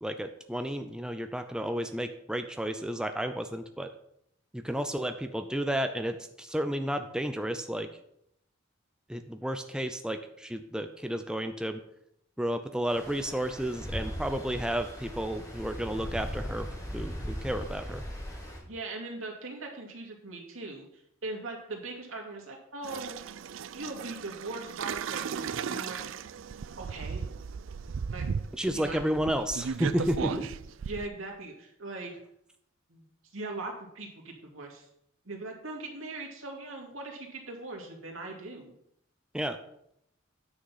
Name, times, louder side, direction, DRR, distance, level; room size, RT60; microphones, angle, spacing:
voice 1, 0.0-3.9 4.5-7.9 9.1-11.8 12.4-16.7 16.9-18.0 28.6-30.5 39.3-39.6, equal, 5° right, 7 dB, 0.5 m, -32 dB
Stream, 12.9-18.6, equal, 15° left, 2.6 m, -38 dB
voice 2, 18.6-23.2 23.7-26.0 26.8-27.2 28.1-28.3 28.7-29.0 30.2-30.4 30.8-32.1 32.9-33.0 33.3-34.9 35.2-38.7, right 2 dB, 85° right, 1 dB, 2.4 m, -40 dB
sound 1, 22.8-31.1, right 6 dB, 70° right, 0.4 m, -36 dB
9.6 x 6.4 x 5.6 m, 0.74 s
head